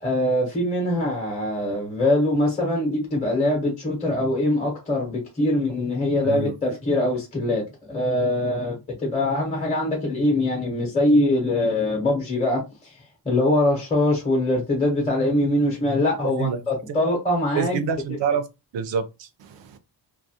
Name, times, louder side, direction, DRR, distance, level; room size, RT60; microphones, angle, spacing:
voice 1, 0.0-12.9 13.2-17.9, left 1 dB, 15° left, 0.6 m, -23 dB
voice 2, 6.2-6.8 16.2-16.6 17.5-18.4 18.7-19.8, right 7 dB, 85° right, 0.5 m, -27 dB
2.3 x 2.0 x 2.7 m
wide cardioid pair, 160°, 43 cm